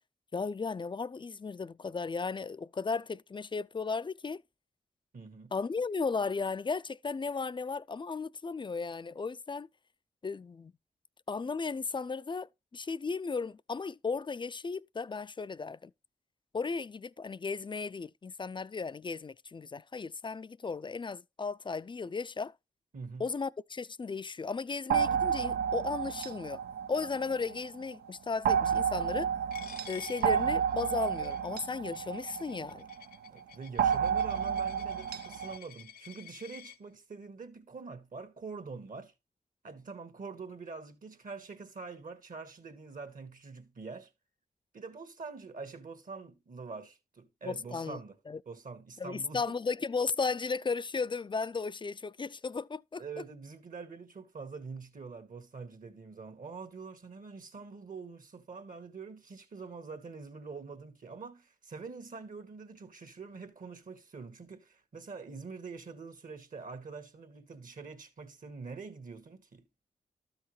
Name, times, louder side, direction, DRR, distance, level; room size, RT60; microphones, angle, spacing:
voice 1, 0.3-4.4 5.5-9.7 10.2-10.7 11.3-15.9 16.5-22.5 23.2-26.6 26.9-29.3 29.9-32.9 47.4-48.0 48.3-48.4 49.0-53.0, left 4 dB, 30° left, 0.4 m, -35 dB
voice 2, 5.1-5.5 22.9-23.3 33.3-39.1 39.6-44.1 44.7-48.2 48.4-49.6 53.0-69.6, right 4 dB, 55° right, 1.5 m, -45 dB
sound 1, 24.9-27.7 28.5-33.0 33.8-35.6, right 8 dB, 85° right, 0.4 m, -31 dB
Coin (dropping), 29.5-36.8, left 9 dB, 65° left, 0.8 m, -52 dB
12.5 x 5.7 x 3.1 m
supercardioid pair, 45°, 16 cm